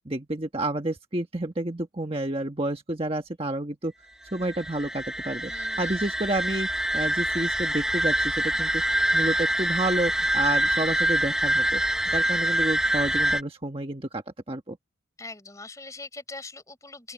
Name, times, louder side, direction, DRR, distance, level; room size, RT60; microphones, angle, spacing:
voice 1, 0.0-3.9 4.3-5.5 5.8-6.7 6.9-8.8 9.1-11.8 12.1-14.2 14.5-14.8, right 1 dB, 30° right, 1.4 m, -29 dB
sound 1, 4.3-13.4, right 1 dB, 5° right, 2.6 m, -25 dB
voice 2, 5.5-6.0 15.2-17.1, left 3 dB, 15° left, 4.9 m, -42 dB
open air
head